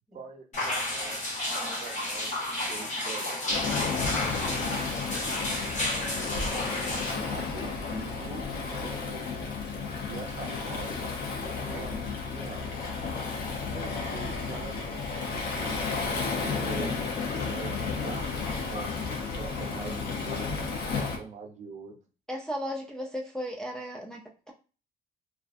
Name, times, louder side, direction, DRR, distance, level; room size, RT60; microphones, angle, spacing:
voice 1, 0.1-1.2 1.6-2.3 2.6-3.7 4.4-5.1 5.8-9.6 10.0-11.2 11.7-12.7 13.7-20.7 20.9-21.9, right 5 dB, 45° right, 3 dB, 0.6 m, -44 dB
sound 1, 0.5-7.1, left 1 dB, 45° left, 1.3 m, -32 dB
Waves surf, 3.5-21.2, left 4 dB, 70° left, 0.7 m, -32 dB
voice 2, 4.4-4.9 22.3-24.5, equal, 5° left, -1 dB, 0.3 m, -36 dB
sound 2, 6.1-18.6, left 3 dB, 90° left, 1.0 m, -49 dB
2.3 x 2.3 x 2.5 m, 0.35 s
cardioid pair, 110°, 17 cm